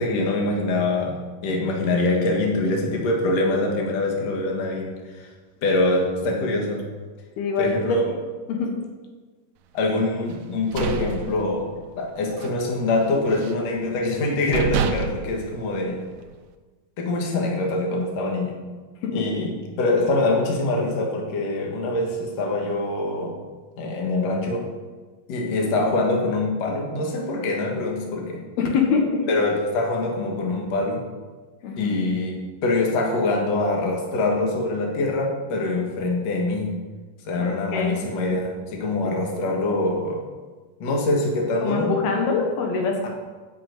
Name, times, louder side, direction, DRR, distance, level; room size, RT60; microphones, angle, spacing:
voice 1, 0.0-5.3 5.6-6.9 7.6-8.1 9.7-16.0 17.0-18.6 19.1-23.4 23.8-24.7 25.3-28.4 29.3-31.0 31.8-36.7 37.3-40.2 40.8-42.0 43.0-43.1, left 2 dB, 55° left, 0 dB, 2.6 m, -24 dB
voice 2, 7.4-8.0 8.5-8.7 19.0-19.4 28.6-29.3 31.6-31.9 37.4-37.9 39.0-39.2 41.6-43.1, left 5 dB, 90° left, 2 dB, 3.5 m, -24 dB
sound 1, 10.4-12.0 12.3-12.6 12.9-13.7 14.2-14.3 14.5-16.4, right 6 dB, 80° right, 1.6 m, -29 dB
11.5 x 6.0 x 8.0 m, 1.4 s
omnidirectional pair, 4.3 m